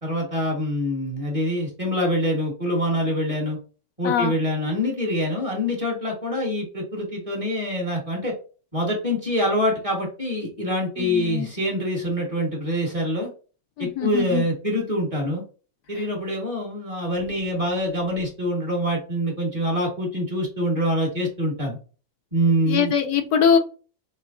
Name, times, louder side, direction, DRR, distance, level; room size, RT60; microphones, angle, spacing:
voice 1, 0.0-3.6 4.0-8.3 8.7-13.3 13.8-15.4 15.9-21.8 22.3-22.9, equal, 25° right, -1 dB, 1.4 m, -25 dB
voice 2, 11.0-11.5 13.8-14.5 22.7-23.6, left 7 dB, 85° left, 5 dB, 1.2 m, -22 dB
5.6 x 3.3 x 2.5 m, 0.36 s
omnidirectional pair, 1.6 m